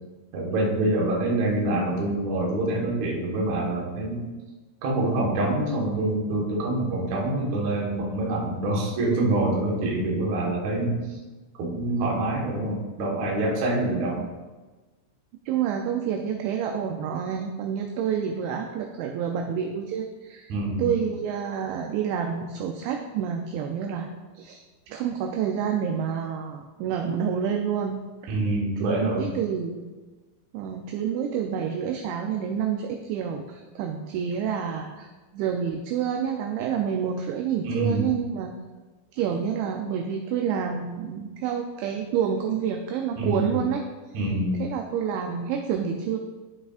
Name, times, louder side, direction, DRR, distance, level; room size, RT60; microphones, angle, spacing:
voice 1, 0.3-4.2 4.8-11.0 11.6-14.2 20.5-20.9 28.3-29.3 37.6-38.1 43.2-43.6 44.1-44.6, right 2 dB, 70° right, -3 dB, 1.7 m, -26 dB
voice 2, 15.5-20.5 20.8-28.3 28.8-29.9 30.5-38.5 39.1-43.8 44.6-46.2, right 8 dB, 85° right, 3 dB, 2.6 m, -28 dB
13.0 x 5.8 x 2.5 m, 1.3 s
omnidirectional pair, 5.8 m